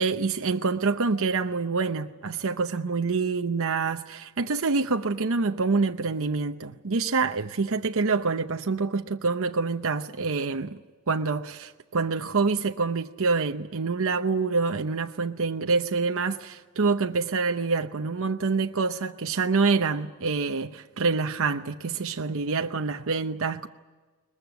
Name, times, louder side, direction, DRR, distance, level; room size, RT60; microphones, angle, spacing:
voice 1, 0.0-10.8 11.1-23.7, right 4 dB, 65° right, 0.8 m, -26 dB
22.0 x 20.5 x 9.4 m
head